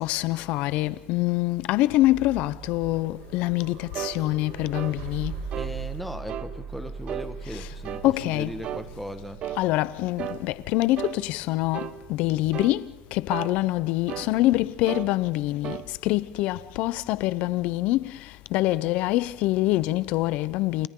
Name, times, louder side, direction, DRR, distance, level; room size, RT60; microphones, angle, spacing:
voice 1, 0.0-5.3 8.0-8.5 9.6-12.8 13.1-15.8 16.0-18.0 18.5-20.9, left 17 dB, 65° left, 0.8 m, -25 dB
sound 1, 1.9-17.9, right 6 dB, 70° right, 6.2 m, -42 dB
sound 2, 3.9-4.2 4.7-5.0 5.5-5.8 6.3-6.5 7.1-7.3 7.8-8.1 8.6-8.9 9.4-9.6 10.2-10.4 11.0-11.2 11.7-12.0 12.5-12.8 13.3-13.5 14.1-14.3 14.9-15.1 15.6-15.9, right 11 dB, 50° right, 1.0 m, -34 dB
voice 2, 5.5-9.4, left 1 dB, ahead, 1.6 m, -37 dB
30.0 x 28.5 x 3.9 m
supercardioid pair, 115°, 2 cm